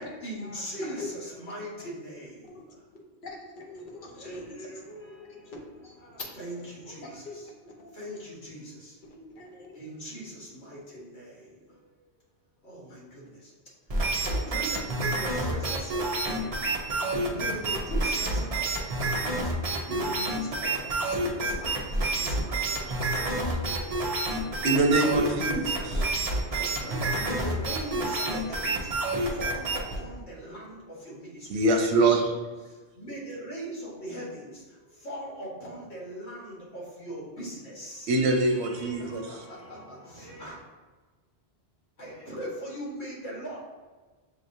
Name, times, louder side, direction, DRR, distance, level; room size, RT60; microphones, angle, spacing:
voice 1, 0.2-2.8 4.0-5.5 6.0-7.4 7.9-9.0 9.7-11.9 12.6-13.5 13.9-31.7 32.7-38.1 38.4-40.6 42.0-43.6, right 1 dB, 75° left, -5 dB, 1.7 m, -41 dB
voice 2, 0.8-1.2 2.4-2.6 2.9-4.8 5.3-6.3 7.0-8.2 9.0-9.8, left 2 dB, 50° left, -1 dB, 1.0 m, -43 dB
sound 1, 13.9-30.0, right 2 dB, 40° right, 0.7 m, -28 dB
voice 3, 24.6-26.1 31.5-32.4 38.1-39.2, right 2 dB, 80° right, 3 dB, 1.0 m, -24 dB
6.4 x 3.2 x 2.6 m, 1.3 s
omnidirectional pair, 1.1 m